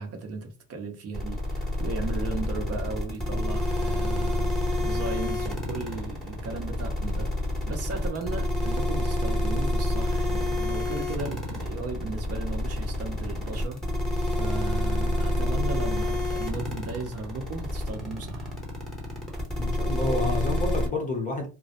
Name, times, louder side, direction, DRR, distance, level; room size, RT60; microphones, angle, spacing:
voice 1, 0.0-4.5 4.8-7.3 7.7-18.5, right 3 dB, 40° right, 0.7 m, -36 dB
sound 1, 1.1-20.9, left 1 dB, ahead, 0.9 m, -28 dB
voice 2, 19.6-21.5, left 2 dB, 20° left, 0.6 m, -29 dB
2.2 x 2.0 x 2.7 m
supercardioid pair, 110°, 37 cm